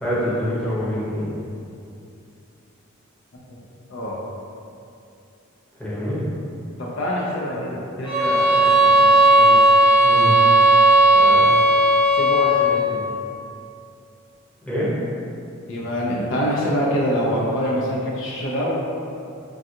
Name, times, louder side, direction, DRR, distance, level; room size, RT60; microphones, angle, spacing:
voice 1, 0.0-1.4 5.8-6.2 10.0-10.4 11.3-11.4 14.7-14.9, equal, 5° left, -11 dB, 0.7 m, -25 dB
voice 2, 6.8-9.6 11.1-11.5 12.2-13.0 15.7-18.7, equal, 60° left, -5 dB, 0.5 m, -25 dB
sound 1, 8.1-12.8, right 1 dB, 45° right, 0.7 m, -15 dB
3.5 x 2.3 x 2.7 m, 2.6 s
head